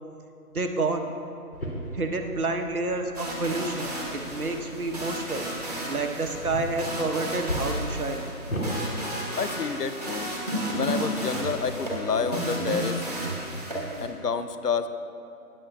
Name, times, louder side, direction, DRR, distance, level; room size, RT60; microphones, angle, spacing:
voice 1, 0.5-1.1 1.9-5.5 5.9-8.3, right 2 dB, 65° right, 4 dB, 1.1 m, -29 dB
sound 1, 1.5-8.7, equal, 65° left, 2.4 m, -37 dB
sound 2, 3.1-14.1, right 1 dB, 25° right, 1.1 m, -33 dB
voice 2, 9.4-10.3 10.8-13.0 14.0-14.9, left 5 dB, 85° left, 10 dB, 0.7 m, -29 dB
18.5 x 7.3 x 2.3 m, 2.6 s
figure-of-eight pair, 170°, 46 cm